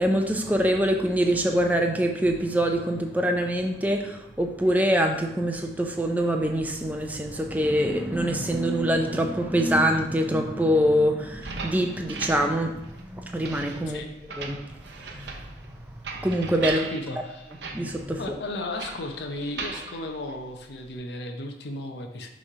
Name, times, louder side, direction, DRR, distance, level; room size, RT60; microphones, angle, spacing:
voice 1, 0.0-14.0 14.4-14.6 15.0-15.5 16.2-16.8 17.7-18.2, equal, 10° right, 3 dB, 0.5 m, -24 dB
sound 1, 11.3-21.0, right 4 dB, 70° right, 0.7 m, -39 dB
voice 2, 16.8-17.5 18.2-22.3, left 2 dB, 70° left, 4 dB, 0.7 m, -35 dB
6.1 x 3.2 x 5.5 m, 0.88 s
head